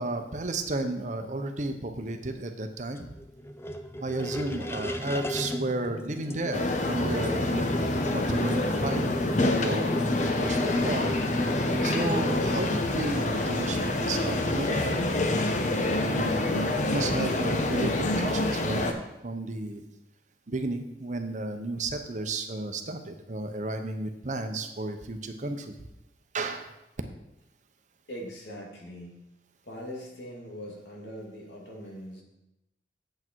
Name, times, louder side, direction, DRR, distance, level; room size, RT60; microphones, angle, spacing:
voice 1, 0.0-3.1 4.0-7.7 8.1-9.9 10.4-11.1 11.8-15.0 16.0-18.9 19.2-19.8 20.5-25.8 26.3-26.7, right 2 dB, 45° right, 6 dB, 0.8 m, -33 dB
sound 1, 3.0-12.6, left 1 dB, 15° left, 0.4 m, -32 dB
sound 2, 6.5-18.9, left 2 dB, 45° left, 0.8 m, -27 dB
voice 2, 28.1-29.2 29.7-32.2, equal, 80° left, -2 dB, 2.5 m, -41 dB
8.5 x 7.7 x 4.6 m, 0.89 s
head